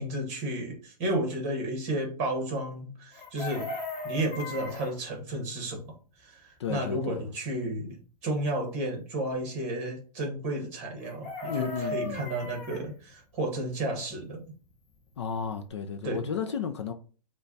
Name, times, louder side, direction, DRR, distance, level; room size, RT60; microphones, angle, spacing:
voice 1, 0.0-3.7 4.0-14.4 16.0-16.2, right 1 dB, 25° right, 1.2 m, -32 dB
Chicken rooster, 3.1-4.9 11.0-12.8 15.1-15.2 15.4-15.7, left 2 dB, 25° left, 1.0 m, -37 dB
voice 2, 6.6-7.3 11.4-12.2 15.2-16.9, left 7 dB, 45° left, 0.4 m, -33 dB
5.5 x 2.3 x 3.9 m
hypercardioid pair, 180°, 20 cm